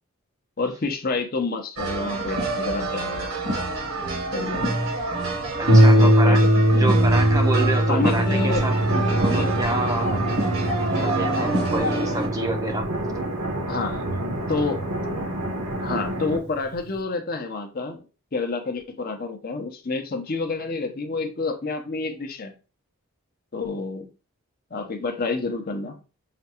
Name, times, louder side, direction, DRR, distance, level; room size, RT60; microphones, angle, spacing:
voice 1, 0.6-3.3 4.3-4.8 6.0-6.5 6.7-6.9 7.8-8.7 8.9-9.5 10.0-10.2 13.7-14.0 14.5-14.8 15.8-18.0 18.3-22.5 23.5-24.1 24.7-26.0, left 3 dB, 40° left, 5 dB, 0.6 m, -28 dB
sound 1, 1.8-12.3, right 2 dB, 70° right, 1.0 m, -27 dB
voice 2, 5.6-6.4 6.7-8.7 9.2-10.1 10.9-12.9, right 2 dB, 15° right, 4 dB, 0.4 m, -28 dB
Harp, 5.7-14.9 15.7-15.8 16.3-16.4, right 1 dB, 55° right, 0.7 m, -21 dB
sound 2, 8.4-16.4, right 1 dB, 90° right, 1.2 m, -29 dB
5.7 x 2.2 x 2.9 m, 0.33 s
head